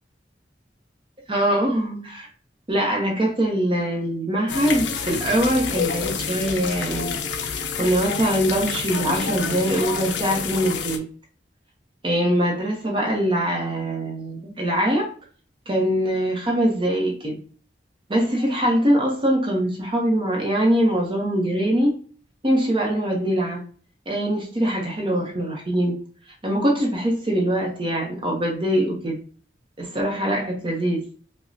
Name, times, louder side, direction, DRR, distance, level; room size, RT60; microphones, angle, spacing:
voice 1, 1.3-2.3 2.7-7.2 7.8-11.0 12.0-15.1 15.7-17.4 18.1-22.0 22.4-23.6 24.1-26.0 26.4-29.2 29.8-31.0, right 1 dB, 30° right, -1 dB, 0.7 m, -23 dB
sound 1, 4.5-11.0, left 6 dB, 75° left, 0.5 m, -28 dB
4.9 x 2.1 x 2.6 m, 0.42 s
head